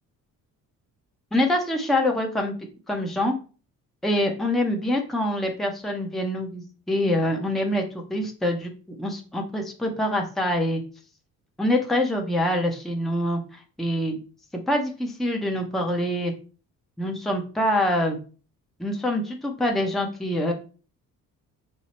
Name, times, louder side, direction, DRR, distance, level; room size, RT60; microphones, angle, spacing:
voice 1, 1.3-2.5 2.9-3.3 4.0-7.8 8.1-8.7 9.0-10.8 11.6-14.2 14.7-16.3 17.0-18.2 18.8-20.5, left 1 dB, ahead, 1 dB, 0.7 m, -25 dB
4.5 x 2.0 x 4.2 m, 0.37 s
cardioid pair, 90°, 36 cm